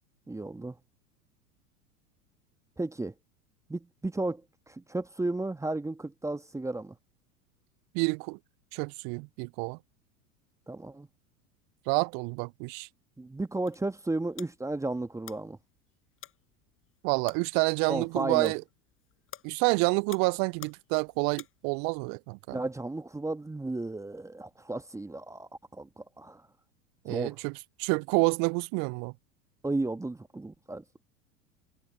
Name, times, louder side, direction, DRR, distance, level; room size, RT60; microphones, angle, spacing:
voice 1, 0.3-0.7 2.8-3.1 3.7-4.4 4.7-6.9 10.7-11.1 13.2-15.6 17.9-18.5 22.5-26.4 27.1-27.3 29.6-30.8, right 2 dB, 5° right, 1.5 m, -34 dB
voice 2, 7.9-8.4 8.7-9.8 11.9-12.9 17.0-18.6 19.4-22.6 27.0-29.1, right 38 dB, 25° right, 0.3 m, -28 dB
sound 1, 13.3-22.0, left 10 dB, 30° left, 5.2 m, -52 dB
figure-of-eight pair, 85°, 43 cm